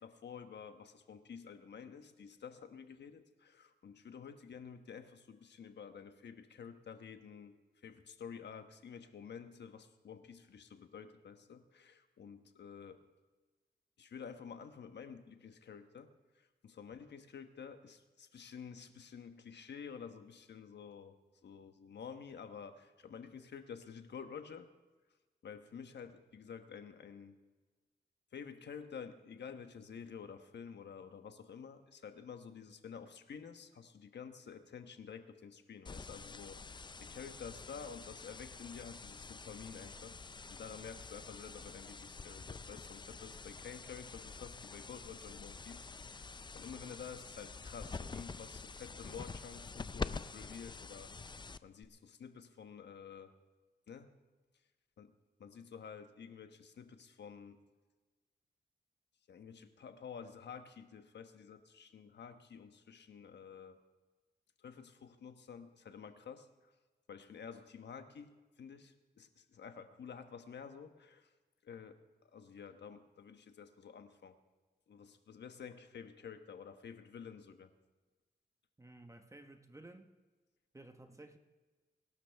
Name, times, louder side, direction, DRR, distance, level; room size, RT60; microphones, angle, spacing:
voice 1, 0.0-13.0 14.0-21.2 21.4-24.7 25.4-27.4 28.3-40.2 40.5-46.2 46.5-51.4 51.6-53.3 53.9-54.1 55.0-55.1 55.4-57.6 59.3-63.8 64.6-66.7 67.1-71.3 71.6-74.4 74.9-77.7, left 6 dB, 80° left, 1.2 m, -50 dB
sound 1, 35.9-51.9, left 4 dB, 25° left, 0.5 m, -47 dB
voice 2, 78.8-80.1 80.7-81.4, right 2 dB, 15° right, 1.2 m, -54 dB
23.0 x 12.0 x 3.5 m
cardioid pair, 85°, 18 cm